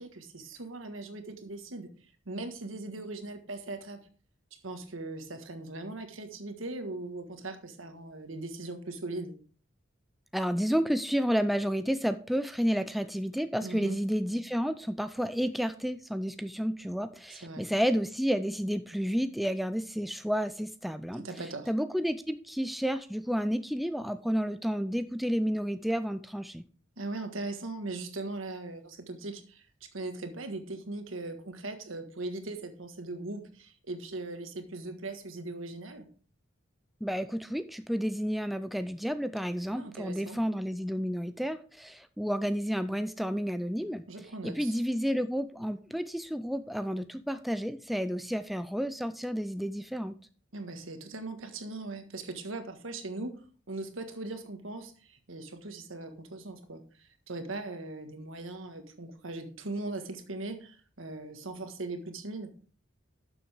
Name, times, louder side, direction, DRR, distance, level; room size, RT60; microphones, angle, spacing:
voice 1, 0.0-1.9 2.2-4.0 4.6-9.3 13.6-14.0 17.3-17.7 21.1-21.7 27.0-36.0 39.7-40.4 44.1-44.8 50.5-53.4 53.7-62.5, right 2 dB, 90° right, 7 dB, 1.5 m, -39 dB
voice 2, 10.3-21.2 21.7-26.7 37.0-44.1 44.4-50.2, equal, ahead, 10 dB, 0.4 m, -31 dB
12.0 x 7.0 x 3.5 m, 0.41 s
head